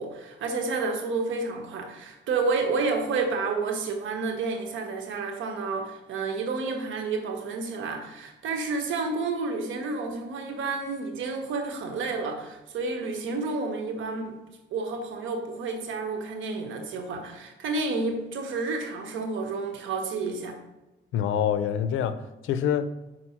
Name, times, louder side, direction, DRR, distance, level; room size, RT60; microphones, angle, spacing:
voice 1, 0.0-14.4 14.7-20.6, right 3 dB, 80° right, 4 dB, 1.2 m, -30 dB
voice 2, 21.1-22.9, left 9 dB, 80° left, 12 dB, 0.5 m, -26 dB
5.8 x 4.2 x 4.5 m, 0.98 s
cardioid pair, 90°, 20 cm